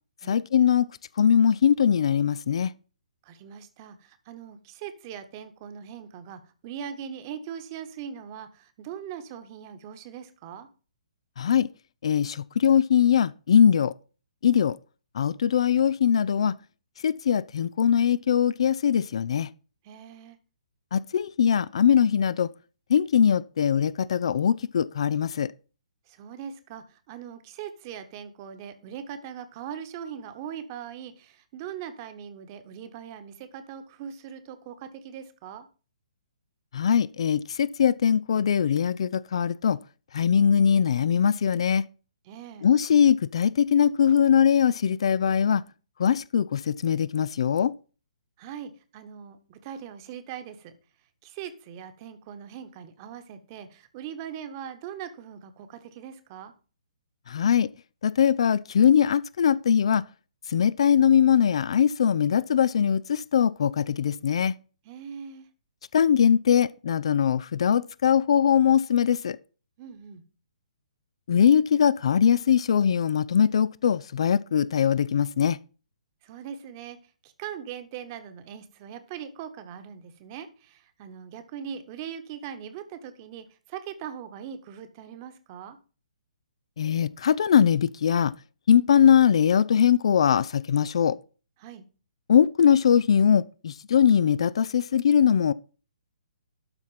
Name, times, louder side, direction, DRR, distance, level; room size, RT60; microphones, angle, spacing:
voice 1, 0.3-0.9 1.2-2.7 11.4-11.7 12.0-13.9 14.4-14.8 15.1-16.5 17.0-19.5 20.9-22.5 22.9-25.5 36.7-39.8 40.1-41.8 42.6-45.6 46.0-47.7 57.3-57.7 58.0-60.0 60.5-64.5 65.9-69.4 71.3-75.6 86.8-88.3 88.7-91.2 92.3-95.5, left 8 dB, 50° left, 0.3 m, -21 dB
voice 2, 3.2-10.7 19.8-20.4 26.1-35.7 42.2-42.7 48.4-50.7 51.2-56.5 64.8-65.4 69.8-70.2 76.2-77.0 77.2-85.8 91.6-91.8, right 8 dB, 30° right, 1.1 m, -40 dB
12.0 x 4.2 x 5.7 m
figure-of-eight pair, 130°, 4 cm